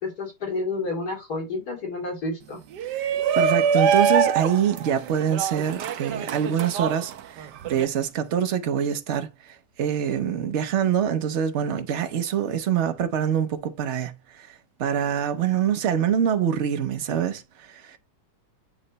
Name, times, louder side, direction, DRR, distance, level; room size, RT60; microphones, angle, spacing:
voice 1, 0.0-2.6, left 3 dB, 60° left, 3.0 m, -30 dB
Shout, 2.7-7.9, right 7 dB, 75° right, 1.3 m, -24 dB
voice 2, 2.8-18.0, right 8 dB, 50° right, 1.0 m, -25 dB
8.9 x 3.2 x 4.0 m
omnidirectional pair, 1.9 m